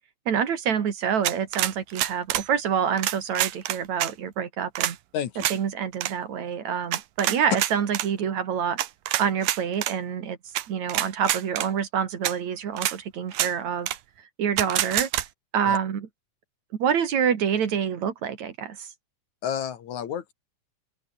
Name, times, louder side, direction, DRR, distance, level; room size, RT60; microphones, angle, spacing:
voice 1, 0.3-5.0 5.5-8.8 9.2-10.4 10.7-13.9 14.4-15.1 15.5-16.1 16.7-18.9, right 8 dB, 60° right, 3.3 m, -27 dB
sound 1, 1.2-2.5 3.0-4.1 4.8-4.9 5.4-5.6 5.9-6.1 6.9-8.1 8.8-9.9 10.6-10.7 10.9-11.7 12.2-12.3 12.8-13.0 13.3-13.5 13.9-14.0 14.6-15.3, right 14 dB, 85° right, 2.9 m, -26 dB
voice 2, 5.1-5.5 15.7-15.8 19.4-20.3, left 9 dB, 65° left, 2.9 m, -31 dB
omnidirectional pair, 3.8 m